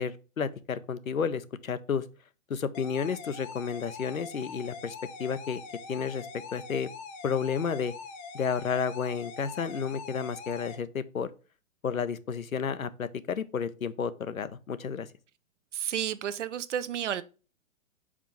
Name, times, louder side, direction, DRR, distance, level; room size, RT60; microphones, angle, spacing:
voice 1, 0.0-2.0 2.5-5.6 5.9-6.3 6.5-6.9 7.2-7.9 8.3-11.3 11.8-15.1, left 6 dB, 80° left, 0.7 m, -31 dB
sound 1, 2.7-10.8, left 4 dB, 20° left, 0.7 m, -43 dB
voice 2, 15.7-17.2, right 9 dB, 60° right, 0.7 m, -31 dB
5.0 x 4.6 x 5.2 m
figure-of-eight pair, 115°, 40 cm